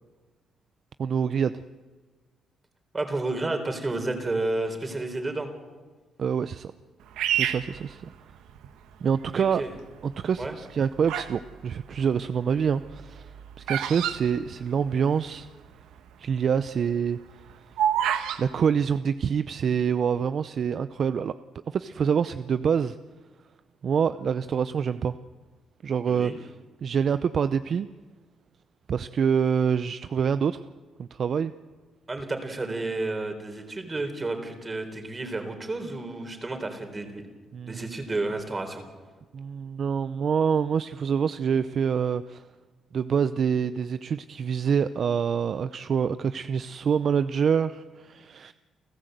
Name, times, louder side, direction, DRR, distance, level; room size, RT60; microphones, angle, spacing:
voice 1, 1.0-1.5 6.2-6.7 7.3-8.1 9.0-9.6 10.0-15.5 16.2-17.2 18.4-21.3 21.7-23.0 23.8-25.1 25.8-26.5 26.8-27.9 28.9-30.7 31.0-31.5 37.5-37.9 39.3-42.4 42.9-48.5, right 7 dB, 55° right, 13 dB, 0.6 m, -26 dB
voice 2, 2.9-5.5 9.3-9.7 10.4-10.5 26.1-26.4 32.1-37.2 37.7-38.8, right 2 dB, 25° right, 7 dB, 3.9 m, -31 dB
Bird vocalization bird call bird song, 7.2-8.7 9.3-9.8 10.5-11.4 11.7-15.2 15.5-15.6 15.7-16.1 16.5-18.4, right 10 dB, 90° right, 1.3 m, -28 dB
29.5 x 13.5 x 8.0 m, 1.4 s
cardioid pair, 90°, 0 cm